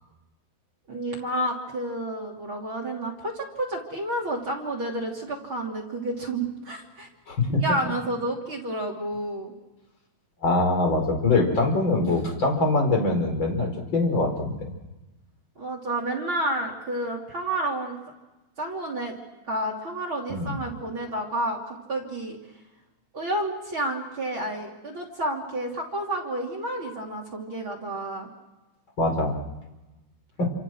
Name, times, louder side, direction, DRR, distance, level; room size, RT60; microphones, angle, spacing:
voice 1, 0.9-7.1 7.5-9.5 15.6-18.0 18.6-19.1 19.5-22.4 23.1-28.3, right 1 dB, 30° right, 2 dB, 3.0 m, -30 dB
voice 2, 7.3-7.6 10.4-14.5 20.3-20.6 29.0-29.4 30.4-30.5, left 2 dB, 25° left, 2 dB, 4.7 m, -23 dB
28.5 x 27.5 x 6.3 m, 1.1 s
omnidirectional pair, 5.6 m